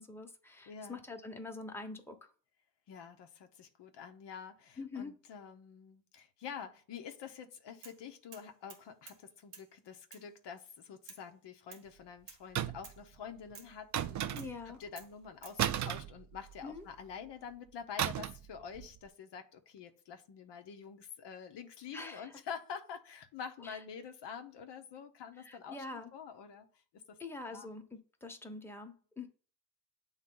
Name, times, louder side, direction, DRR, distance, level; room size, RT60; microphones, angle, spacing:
voice 1, 0.0-2.2 4.8-5.1 14.3-14.8 16.6-16.8 21.9-22.3 23.6-23.8 25.4-26.1 27.2-29.3, left 3 dB, 5° left, 0.9 m, -45 dB
voice 2, 0.7-1.0 2.9-26.7 26.9-27.2 27.5-27.7, left 7 dB, 80° left, 0.8 m, -47 dB
sound 1, 7.8-8.0 8.3-9.2 9.5-9.7 10.1-10.3 11.1-11.3 11.7-11.9 12.3-12.4 12.8-13.0 13.5-13.8 14.4-14.6 15.0-15.6, right 6 dB, 90° right, 1.3 m, -53 dB
sound 2, 12.5-13.0 13.9-14.7 15.6-16.8 18.0-18.5 18.7-19.0, right 10 dB, 45° right, 0.4 m, -34 dB
7.8 x 3.2 x 3.8 m
cardioid pair, 85°, 41 cm